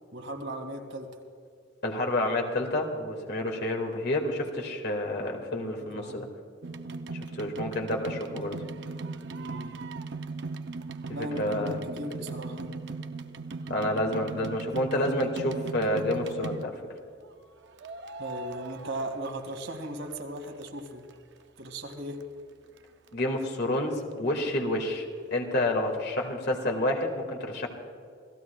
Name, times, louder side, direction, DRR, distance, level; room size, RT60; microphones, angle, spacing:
voice 1, 0.1-1.1 5.9-6.3 9.3-9.7 11.1-12.7 18.2-21.0 21.6-22.2, right 1 dB, 80° right, 4 dB, 2.2 m, -37 dB
voice 2, 1.8-6.3 7.1-8.6 11.0-11.8 13.7-16.8 23.1-27.7, left 1 dB, 55° left, 2 dB, 2.0 m, -29 dB
sound 1, 6.6-17.0 17.8-19.9 20.2-21.1 21.6-21.7 21.9-22.0 22.2-22.3 22.8-22.9 23.1-23.2, right 3 dB, 60° right, 0.6 m, -38 dB
28.0 x 16.0 x 2.3 m, 2.3 s
head